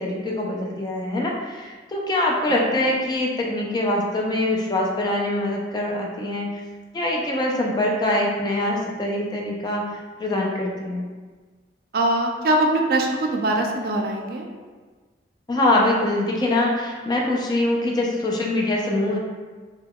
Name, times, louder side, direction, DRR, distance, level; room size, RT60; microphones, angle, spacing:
voice 1, 0.0-6.5 6.9-9.8 10.2-11.1 15.5-19.2, left 1 dB, 25° left, -2 dB, 0.4 m, -23 dB
voice 2, 11.9-14.5, right 1 dB, 55° right, 2 dB, 0.4 m, -22 dB
2.2 x 2.2 x 3.5 m, 1.4 s
head